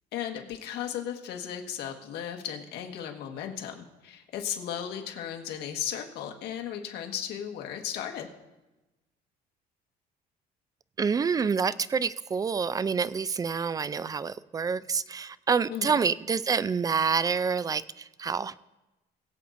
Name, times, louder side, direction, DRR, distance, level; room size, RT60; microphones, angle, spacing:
voice 1, 0.1-8.3 15.7-16.0, left 9 dB, 80° left, 3 dB, 1.6 m, -35 dB
voice 2, 11.0-18.5, right 5 dB, 20° right, 18 dB, 0.3 m, -27 dB
22.0 x 8.3 x 2.6 m, 1.0 s
cardioid pair, 110°, 17 cm